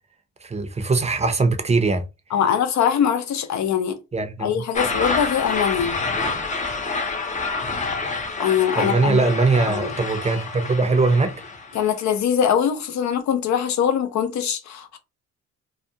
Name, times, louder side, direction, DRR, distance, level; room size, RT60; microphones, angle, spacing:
voice 1, 0.4-2.0 4.1-4.6 8.8-11.3, right 3 dB, 20° right, 0.6 m, -21 dB
voice 2, 2.3-4.0 4.4-6.0 8.4-9.2 9.7-9.9 11.7-15.0, left 8 dB, 65° left, 0.6 m, -22 dB
sound 1, 4.7-11.9, left 3 dB, 25° left, 0.5 m, -28 dB
2.3 x 2.2 x 2.7 m
cardioid pair, 90°, 30 cm